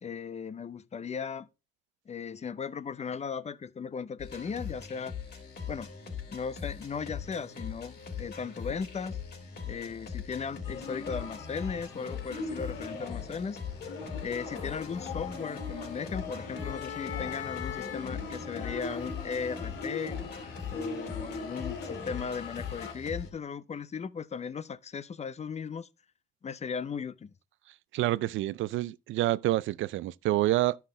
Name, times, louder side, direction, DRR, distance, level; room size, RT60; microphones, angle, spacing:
voice 1, 0.0-1.5 2.1-5.1 5.7-5.9 6.3-9.2 9.7-13.6 14.2-20.2 20.7-25.9 26.4-27.3, left 6 dB, 35° left, 0.6 m, -37 dB
sound 1, 4.2-23.3, left 7 dB, 55° left, 3.5 m, -41 dB
sound 2, 10.6-22.9, left 4 dB, 80° left, 2.2 m, -40 dB
voice 2, 27.9-30.8, right 15 dB, 80° right, 0.4 m, -28 dB
11.5 x 5.8 x 3.7 m
cardioid pair, 90°, 20 cm